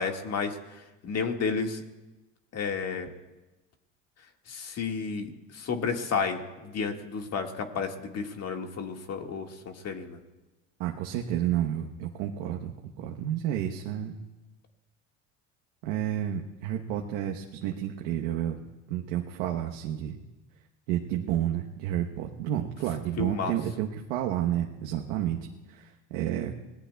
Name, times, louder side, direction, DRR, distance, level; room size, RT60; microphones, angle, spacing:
voice 1, 0.0-1.8 2.5-3.1 4.5-10.2 23.2-23.5, left 5 dB, 45° left, 4 dB, 1.9 m, -32 dB
voice 2, 10.8-14.2 15.8-18.6 18.9-20.2 20.9-25.4 25.7-26.5, right 11 dB, 80° right, 1 dB, 1.1 m, -30 dB
26.0 x 18.5 x 2.3 m, 1.1 s
supercardioid pair, 95°, 36 cm